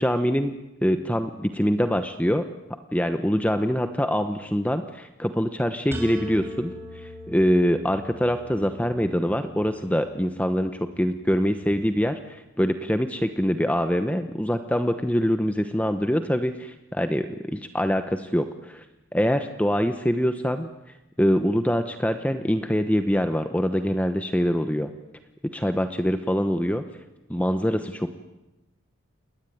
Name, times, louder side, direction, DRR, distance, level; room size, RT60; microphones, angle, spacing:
voice 1, 0.0-2.5 2.9-18.8 19.1-20.7 21.2-24.9 25.5-26.8 27.3-28.1, equal, 5° left, 8 dB, 1.0 m, -24 dB
sound 1, 5.9-11.7, equal, 10° right, 4.8 m, -41 dB
29.0 x 21.0 x 9.4 m, 0.99 s
head